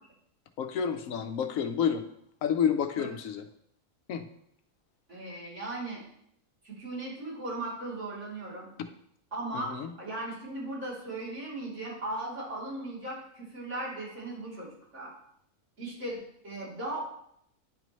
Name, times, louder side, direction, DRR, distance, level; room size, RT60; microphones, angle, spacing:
voice 1, 0.6-2.0 2.4-3.4 4.1-4.3 9.5-9.9, left 7 dB, 80° left, 8 dB, 1.0 m, -29 dB
voice 2, 5.1-6.0 6.6-8.7 9.3-15.1 15.8-17.0, right 2 dB, 60° right, -9 dB, 3.5 m, -37 dB
9.6 x 5.3 x 3.1 m, 0.71 s
omnidirectional pair, 1.4 m